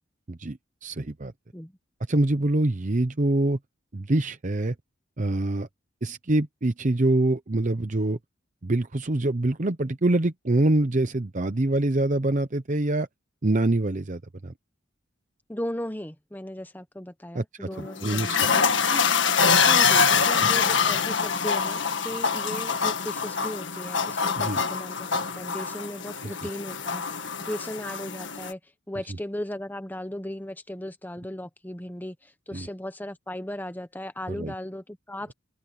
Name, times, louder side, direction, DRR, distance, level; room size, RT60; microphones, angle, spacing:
voice 1, 0.3-1.3 2.1-3.6 3.9-4.7 5.2-5.7 6.0-8.2 8.6-13.1 13.4-14.5 17.3-18.5 24.4-24.6 32.5-32.7 34.3-34.5, right 2 dB, 40° right, 0.8 m, -25 dB
voice 2, 15.5-19.0 19.6-28.6 28.9-35.3, left 1 dB, 10° left, 1.0 m, -37 dB
sound 1, 17.7-28.5, left 6 dB, 65° left, 1.8 m, -24 dB
open air
head